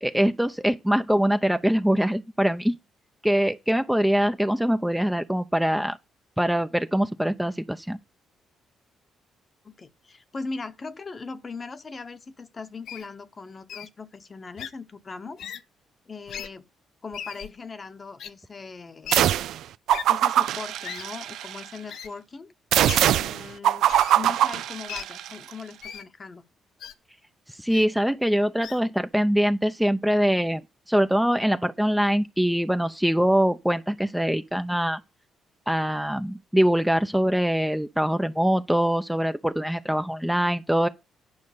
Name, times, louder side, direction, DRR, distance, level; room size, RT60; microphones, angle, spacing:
voice 1, 0.0-2.8 3.2-6.0 6.4-8.0 27.6-30.6 30.9-35.0 35.7-40.9, equal, 5° right, 0.6 m, -23 dB
voice 2, 9.6-15.4 16.1-16.7 17.0-19.2 20.1-22.5 23.2-26.4, left 4 dB, 35° left, 1.0 m, -39 dB
Wild animals, 12.9-13.1 13.7-13.9 14.6-14.7 15.4-15.6 16.3-16.5 17.1-17.5 18.2-18.3 19.0-19.2 19.9-20.0 20.8-21.0 21.9-22.1 22.9-23.1 23.9-24.1 24.9-25.0 25.8-26.0 26.8-26.9 27.7-27.8 28.6-28.8, left 8 dB, 75° left, 0.7 m, -37 dB
sound 1, 19.1-19.6 19.9-21.6 22.7-25.3, right 12 dB, 80° right, 0.4 m, -22 dB
9.6 x 5.3 x 6.7 m
cardioid pair, 90°, 0 cm